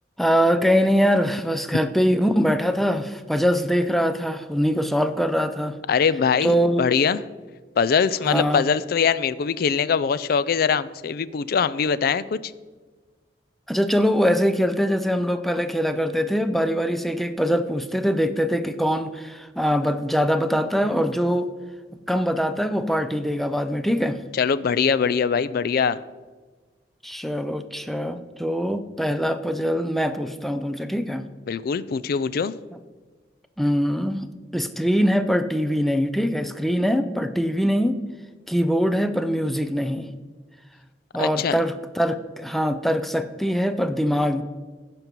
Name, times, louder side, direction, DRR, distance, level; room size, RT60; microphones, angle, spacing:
voice 1, 0.2-5.8 6.4-6.8 8.3-8.7 13.7-21.5 22.1-24.2 27.0-31.3 33.6-37.9 38.5-40.1 41.1-44.4, equal, ahead, 10 dB, 0.5 m, -23 dB
voice 2, 5.9-7.2 7.8-12.4 24.3-26.0 31.5-32.5 41.2-41.5, left 6 dB, 55° left, 16 dB, 0.4 m, -22 dB
15.5 x 5.3 x 4.5 m, 1.4 s
head